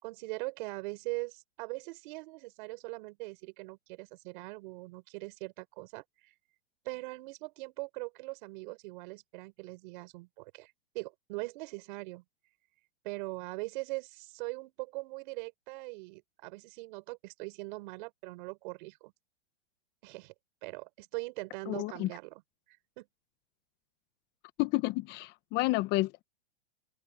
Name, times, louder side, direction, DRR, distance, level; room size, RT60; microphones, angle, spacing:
voice 1, 0.0-6.3 6.8-12.2 13.0-19.1 20.0-20.3 20.6-22.4 22.7-23.1, right 24 dB, 50° right, 4.2 m, -41 dB
voice 2, 21.7-22.1 24.6-26.2, left 21 dB, 30° left, 1.0 m, -30 dB
hypercardioid pair, 140°, 32 cm